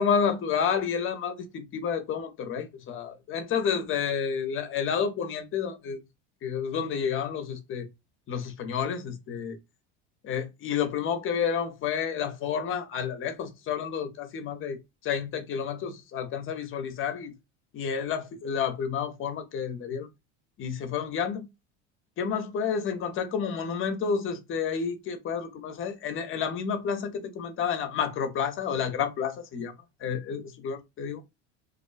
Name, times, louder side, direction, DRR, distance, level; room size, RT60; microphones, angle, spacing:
voice 1, 0.0-6.0 6.4-7.9 8.3-9.6 10.2-14.8 15.0-17.3 17.7-20.1 20.6-21.5 22.2-29.7 30.0-31.2, left 7 dB, 35° left, 0.7 m, -30 dB
2.5 x 2.2 x 2.4 m
supercardioid pair, 105°, 36 cm